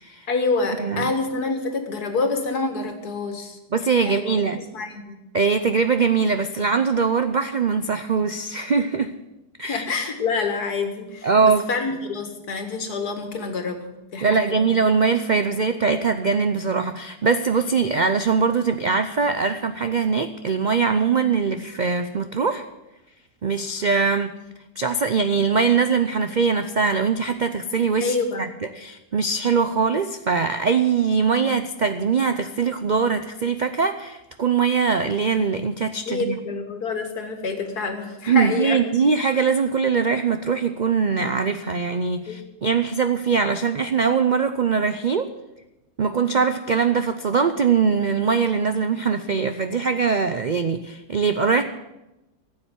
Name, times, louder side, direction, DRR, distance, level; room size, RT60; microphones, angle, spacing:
voice 1, 0.3-3.6 4.0-4.2 4.6-5.2 9.7-14.7 28.0-28.5 36.1-38.8 42.3-42.4, left 4 dB, 75° left, 6 dB, 2.3 m, -27 dB
voice 2, 0.8-1.1 3.7-4.6 5.3-9.1 9.6-9.8 11.2-11.6 14.2-22.6 23.4-24.3 24.8-28.5 28.7-36.4 38.3-45.3 46.0-51.6, right 5 dB, 60° right, 9 dB, 0.4 m, -22 dB
14.5 x 7.8 x 9.8 m, 0.97 s
omnidirectional pair, 1.7 m